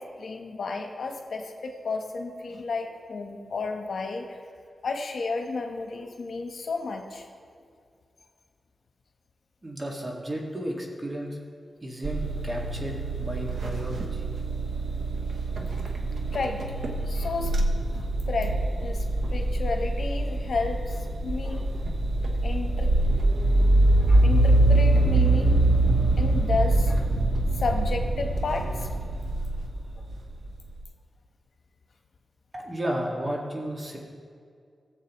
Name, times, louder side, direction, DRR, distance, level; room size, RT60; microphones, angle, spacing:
voice 1, 0.0-4.4 4.8-7.3 15.7-15.8 16.3-16.6 17.0-18.5 18.8-19.0 19.3-21.7 22.4-22.9 24.0-25.7 26.2-27.0 27.4-28.9, left 3 dB, 70° left, 3 dB, 1.1 m, -32 dB
voice 2, 9.6-11.3 11.8-14.2 32.5-34.0, right 1 dB, 30° right, -1 dB, 1.9 m, -33 dB
sound 1, 12.0-30.5, right 2 dB, 75° right, 1.0 m, -24 dB
17.0 x 7.4 x 3.1 m, 2.2 s
cardioid pair, 75°, 0 cm